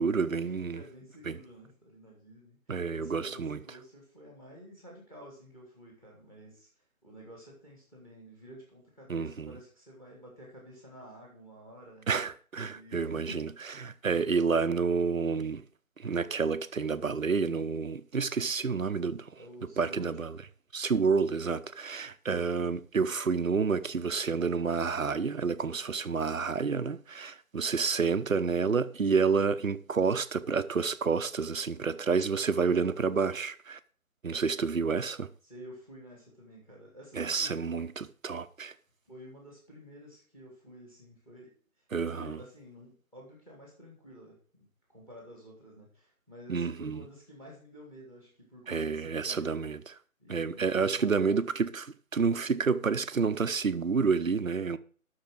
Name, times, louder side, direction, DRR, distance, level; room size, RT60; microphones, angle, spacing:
voice 1, 0.0-0.8 1.3-1.4 2.7-3.6 9.1-9.5 12.1-13.5 13.8-15.6 16.0-19.4 19.8-20.3 20.7-33.8 34.2-35.3 37.1-38.7 41.9-42.4 46.5-47.0 48.7-49.8 50.3-54.8, right 5 dB, 65° right, 0.9 m, -29 dB
voice 2, 0.7-6.7 7.0-12.1 12.6-14.6 19.4-20.2 35.4-37.8 39.1-49.6 50.2-51.4, equal, 5° left, 2.1 m, -51 dB
7.8 x 6.5 x 7.8 m
figure-of-eight pair, 155°, 43 cm